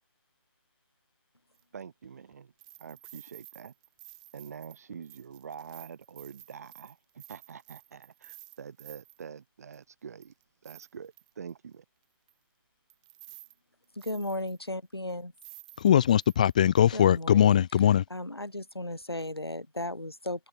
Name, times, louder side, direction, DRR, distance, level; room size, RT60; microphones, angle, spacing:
sound 1, 1.5-1.6 2.6-9.2 9.7-9.8 10.2-11.5 12.3-12.4 12.9-13.5 13.8-14.7 15.1-15.2 15.4-16.8 17.2-17.3, right 21 dB, 20° right, 6.0 m, -52 dB
voice 1, 1.7-2.5 2.8-3.7 4.3-10.3 10.6-11.8, right 7 dB, 40° right, 7.9 m, -45 dB
voice 2, 13.9-15.3 16.9-17.6 18.1-20.5, left 1 dB, 85° left, 4.7 m, -35 dB
voice 3, 15.8-18.0, left 10 dB, 20° left, 0.5 m, -21 dB
figure-of-eight pair, 150°, 13 cm